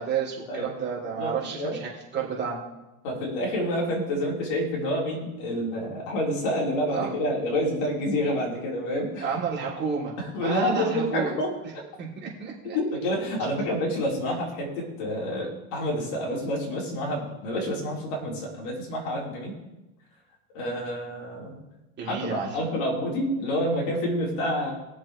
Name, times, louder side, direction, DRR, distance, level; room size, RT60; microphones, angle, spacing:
voice 1, 0.0-2.6 6.9-7.1 9.2-11.3 12.0-12.8 22.0-22.6, right 6 dB, 25° right, -5 dB, 3.2 m, -31 dB
voice 2, 1.2-1.8 3.0-9.2 10.2-11.5 12.7-19.5 20.5-21.6 22.0-24.7, equal, 65° left, -3 dB, 4.3 m, -28 dB
22.0 x 7.3 x 3.3 m, 1.0 s
supercardioid pair, 140°, 40 cm